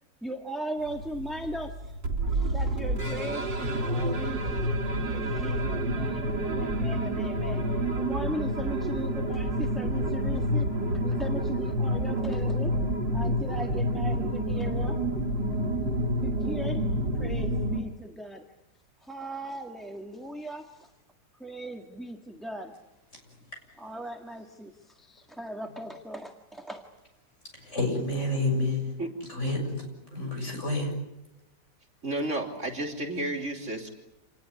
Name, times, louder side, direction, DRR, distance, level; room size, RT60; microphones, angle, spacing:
voice 1, 0.2-1.8 2.3-4.7 5.1-7.7 8.0-10.7 10.9-12.7 13.1-15.0 16.2-16.8 17.1-18.4 19.0-20.9 21.4-22.7 23.8-26.8, right 1 dB, ahead, 1.6 m, -38 dB
sound 1, 0.8-17.8, right 1 dB, 75° right, 3.9 m, -28 dB
voice 2, 27.5-28.9 29.3-30.9, left 2 dB, 40° left, 7.5 m, -29 dB
voice 3, 32.0-33.9, right 1 dB, 40° right, 3.5 m, -31 dB
27.5 x 19.5 x 9.8 m
omnidirectional pair, 2.0 m